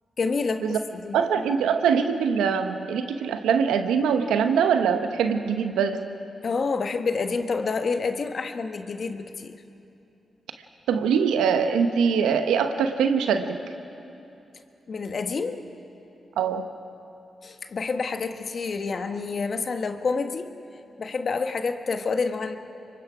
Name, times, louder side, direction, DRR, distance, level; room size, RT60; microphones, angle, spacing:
voice 1, 0.2-1.2 6.4-9.5 14.9-15.6 17.4-20.5 21.0-22.6, left 4 dB, 60° left, 7 dB, 1.3 m, -28 dB
voice 2, 1.1-6.1 10.9-13.6 16.4-16.7, right 6 dB, 90° right, 8 dB, 1.0 m, -23 dB
25.0 x 23.0 x 4.9 m, 2.8 s
supercardioid pair, 40°, 0 cm